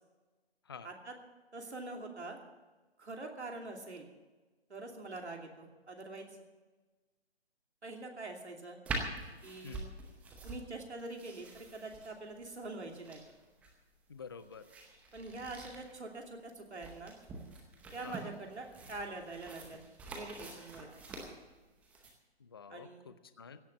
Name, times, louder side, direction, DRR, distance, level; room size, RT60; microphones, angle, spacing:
voice 1, 1.5-2.4 3.0-4.1 4.7-6.3 7.8-8.8 9.4-10.0 10.4-13.2 15.1-17.1 17.9-19.8 20.1-20.9 22.7-23.1, right 2 dB, 85° right, 2 dB, 2.9 m, -44 dB
sound 1, 8.8-22.1, right 3 dB, 5° right, 0.8 m, -46 dB
voice 2, 14.1-14.7 18.0-18.3 22.4-23.6, left 5 dB, 25° left, 12 dB, 0.5 m, -49 dB
16.5 x 6.4 x 10.0 m, 1.2 s
hypercardioid pair, 155°, 33 cm